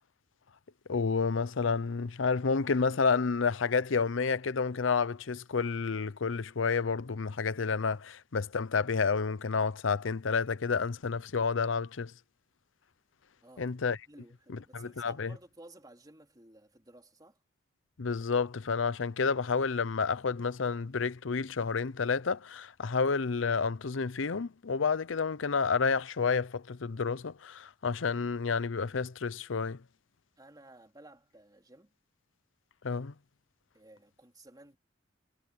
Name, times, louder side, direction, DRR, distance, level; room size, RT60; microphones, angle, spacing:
voice 1, 0.9-12.1 13.6-14.0 14.7-15.3 18.0-29.8 32.8-33.1, left 5 dB, 85° left, 0.7 m, -30 dB
voice 2, 13.4-13.8 14.1-17.4 30.4-32.0 33.7-34.8, right 2 dB, 20° right, 3.9 m, -55 dB
head